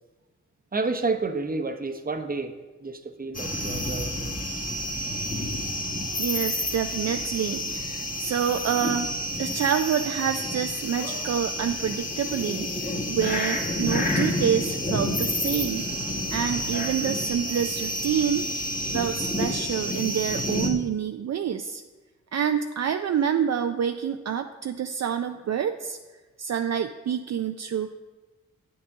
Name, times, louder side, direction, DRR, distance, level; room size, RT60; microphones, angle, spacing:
voice 1, 0.7-4.4, right 3 dB, 25° right, 7 dB, 0.9 m, -30 dB
sound 1, 3.3-20.7, left 1 dB, 25° left, 1.6 m, -29 dB
voice 2, 6.2-9.1 9.4-15.9 16.3-18.4 18.9-21.8 22.3-26.0 26.4-27.9, right 8 dB, 55° right, 7 dB, 0.5 m, -27 dB
8.7 x 5.9 x 3.6 m, 1.2 s
supercardioid pair, 40°, 32 cm